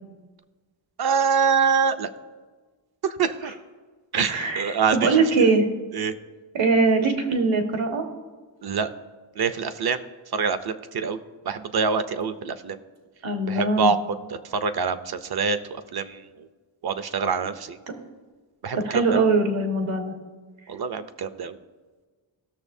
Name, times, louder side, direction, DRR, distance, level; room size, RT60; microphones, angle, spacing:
voice 1, 1.0-2.1 3.0-3.5 4.1-5.1 5.4-5.5 5.9-6.1 8.6-8.9 9.4-10.0 10.3-11.2 11.5-12.8 13.5-14.0 14.5-16.3 16.8-17.8 18.6-19.2 20.7-21.6, right 6 dB, 55° right, 11 dB, 0.6 m, -25 dB
voice 2, 4.3-5.7 6.5-8.0 13.2-13.9 17.9-18.0 18.8-20.1, right 3 dB, 80° right, 3 dB, 1.5 m, -22 dB
17.5 x 6.7 x 2.7 m, 1.4 s
wide cardioid pair, 135°, 47 cm